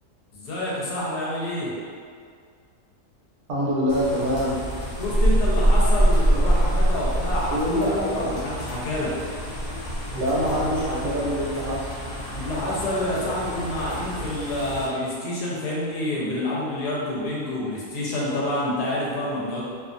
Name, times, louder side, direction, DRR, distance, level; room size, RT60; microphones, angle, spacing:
voice 1, 0.3-1.7 5.0-9.1 12.3-19.6, left 1 dB, 85° left, -6 dB, 1.3 m, -28 dB
voice 2, 3.5-4.6 7.5-8.3 10.1-11.9, equal, 60° right, -7 dB, 0.8 m, -25 dB
sound 1, 3.9-14.8, right 1 dB, 55° left, 0.8 m, -25 dB
2.8 x 2.3 x 2.5 m, 2.1 s
omnidirectional pair, 1.7 m